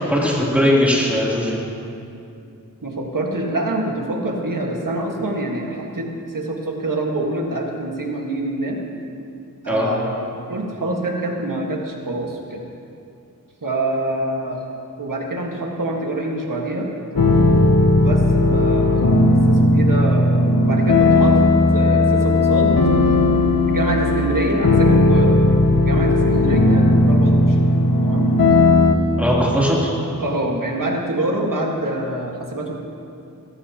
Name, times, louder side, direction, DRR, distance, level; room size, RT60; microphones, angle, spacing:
voice 1, 0.0-1.6 9.7-9.9 17.3-17.4 29.2-29.9, equal, 5° right, -5 dB, 3.2 m, -19 dB
voice 2, 2.8-8.8 9.6-12.6 13.6-14.6 15.0-16.9 17.9-22.8 23.7-25.4 25.8-27.6 28.0-28.3 30.2-32.8, right 1 dB, 65° right, 0 dB, 1.8 m, -25 dB
sound 1, 17.1-29.0, left 2 dB, 80° left, 0.9 m, -16 dB
17.5 x 14.0 x 3.0 m, 2.6 s
wide cardioid pair, 55°, 34 cm